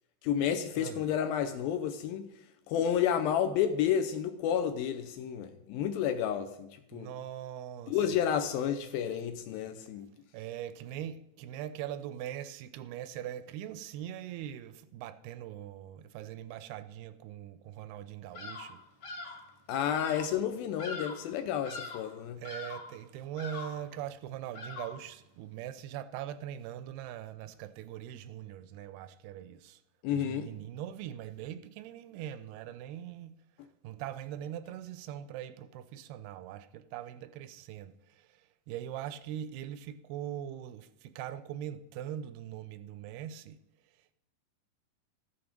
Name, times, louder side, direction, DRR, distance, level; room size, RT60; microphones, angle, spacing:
voice 1, 0.2-2.3 2.7-7.1 7.9-10.1 19.7-22.4 30.0-30.5, left 9 dB, 80° left, 2.3 m, -31 dB
voice 2, 6.9-8.0 10.3-18.8 22.4-29.8 30.1-33.4 33.8-38.4 38.7-43.6, right 11 dB, 85° right, 2.5 m, -41 dB
Bird vocalization bird call bird song, 18.3-18.8 19.0-19.5 19.9-20.3 20.8-21.3 21.6-22.1 22.4-23.0 23.4-23.9 24.5-25.1, left 3 dB, 50° left, 1.2 m, -42 dB
13.5 x 6.9 x 5.2 m
omnidirectional pair, 4.6 m